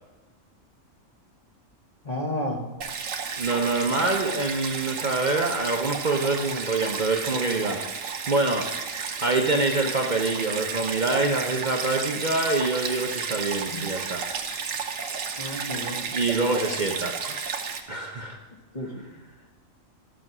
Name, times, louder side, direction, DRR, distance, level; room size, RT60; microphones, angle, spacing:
voice 1, 2.0-2.7 13.7-13.8 15.4-16.2 18.7-19.0, left 1 dB, 30° left, 1 dB, 1.5 m, -32 dB
Stream, 2.8-17.8, right 6 dB, 80° right, 1.3 m, -32 dB
voice 2, 3.4-7.8 8.3-8.7 9.2-14.2 16.1-17.2 17.9-18.4, right 3 dB, 40° right, 2 dB, 0.8 m, -25 dB
12.5 x 6.2 x 6.0 m, 1.3 s
omnidirectional pair, 1.3 m